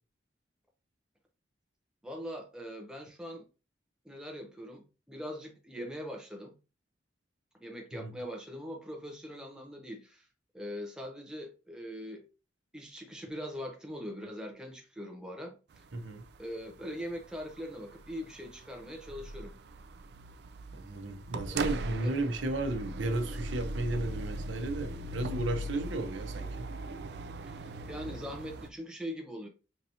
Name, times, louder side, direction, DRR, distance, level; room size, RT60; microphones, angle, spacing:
voice 1, 2.0-3.5 4.0-6.5 7.6-10.3 10.5-12.2 12.7-15.8 16.4-19.6 21.4-22.1 27.4-29.5, equal, 5° right, 0.6 m, -42 dB
sound 1, 15.7-28.7, right 1 dB, 55° right, 0.3 m, -40 dB
voice 2, 15.9-16.2 20.7-26.7, right 2 dB, 80° right, 0.7 m, -33 dB
4.5 x 2.7 x 2.7 m
head